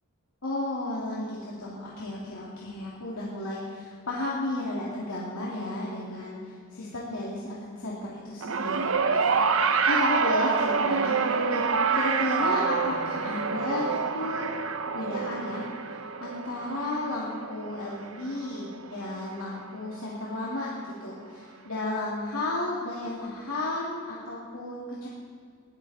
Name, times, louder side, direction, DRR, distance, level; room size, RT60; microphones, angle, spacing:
voice 1, 0.4-14.5 14.9-25.1, left 2 dB, 85° left, -5 dB, 2.7 m, -33 dB
sound 1, 8.4-18.8 19.9-20.0, right 5 dB, 75° right, 0.9 m, -27 dB
21.0 x 13.0 x 4.2 m, 2.1 s
head